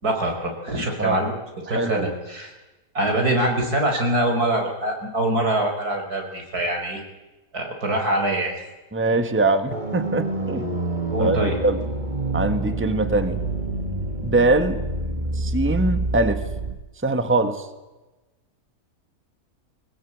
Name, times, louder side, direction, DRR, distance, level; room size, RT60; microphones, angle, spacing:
voice 1, 0.0-1.3 1.7-2.5 3.0-7.0 7.5-8.5 11.1-11.6, right 1 dB, 90° right, 3 dB, 5.3 m, -24 dB
voice 2, 1.7-2.1 8.9-10.8 11.2-11.8 12.3-13.4 14.2-14.8 15.3-16.4 17.0-17.7, right 2 dB, 10° right, 9 dB, 1.5 m, -22 dB
sound 1, 9.7-16.7, right 2 dB, 30° right, 1.9 m, -27 dB
21.5 x 20.0 x 8.7 m, 1.1 s
omnidirectional pair, 1.6 m